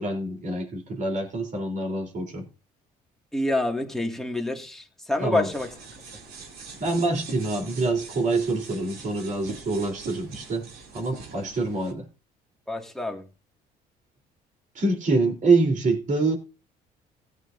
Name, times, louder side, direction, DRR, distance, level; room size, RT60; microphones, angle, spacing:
voice 1, 0.0-2.5 5.2-5.5 6.8-10.7 10.9-12.1 14.8-16.4, right 3 dB, 50° right, 3.7 m, -25 dB
voice 2, 3.3-5.7 12.7-13.3, left 2 dB, ahead, 2.2 m, -27 dB
sound 1, 5.5-11.9, right 4 dB, 70° right, 2.9 m, -43 dB
17.0 x 9.3 x 2.7 m
cardioid pair, 110°, 17 cm